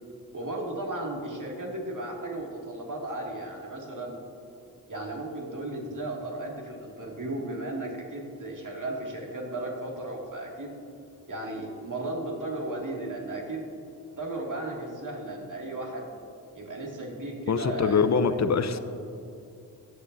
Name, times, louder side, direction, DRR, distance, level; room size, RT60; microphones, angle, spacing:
voice 1, 0.3-4.2 4.9-10.8 11.3-13.7 14.2-16.1 16.5-18.4 18.7-18.8, right 2 dB, 50° right, -1 dB, 2.4 m, -35 dB
voice 2, 17.5-18.8, left 5 dB, 40° left, 10 dB, 0.7 m, -24 dB
18.5 x 7.3 x 2.7 m, 2.6 s
supercardioid pair, 45°, 41 cm